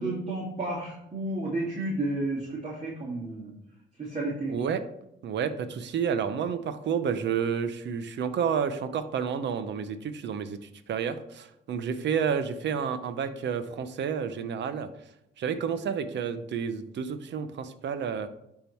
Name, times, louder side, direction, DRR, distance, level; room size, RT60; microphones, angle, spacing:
voice 1, 0.0-3.5 4.0-4.6, right 2 dB, 35° right, -5 dB, 2.7 m, -32 dB
voice 2, 4.5-4.8 5.2-10.6 10.9-14.9 15.4-18.3, right 7 dB, 65° right, 11 dB, 0.8 m, -30 dB
11.5 x 3.8 x 4.5 m, 0.82 s
cardioid pair, 90°, 20 cm